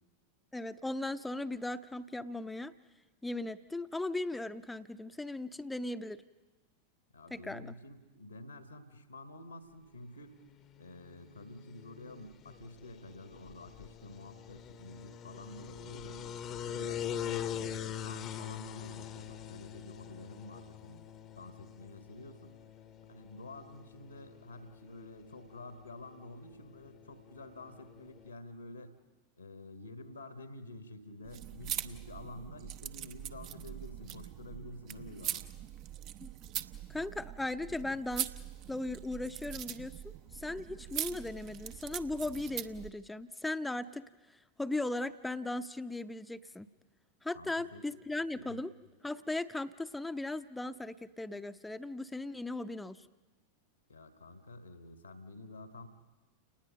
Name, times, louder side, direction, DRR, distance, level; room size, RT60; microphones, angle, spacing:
voice 1, 0.5-2.7 3.2-6.2 7.3-7.7 36.2-36.3 36.9-38.3 38.7-44.1 44.6-46.7 47.2-48.7 49.0-53.1, left 2 dB, 5° left, 13 dB, 0.7 m, -37 dB
voice 2, 7.1-10.4 10.8-16.3 16.7-22.5 23.1-28.9 29.4-35.4 47.3-47.8 48.3-48.6 53.9-55.9, left 1 dB, 80° left, 9 dB, 1.6 m, -49 dB
sound 1, 10.2-28.3, left 9 dB, 30° left, 0.9 m, -44 dB
sound 2, 31.2-42.9, right 11 dB, 40° right, 0.8 m, -42 dB
29.5 x 20.0 x 5.3 m, 1.2 s
figure-of-eight pair, 90°, 0 cm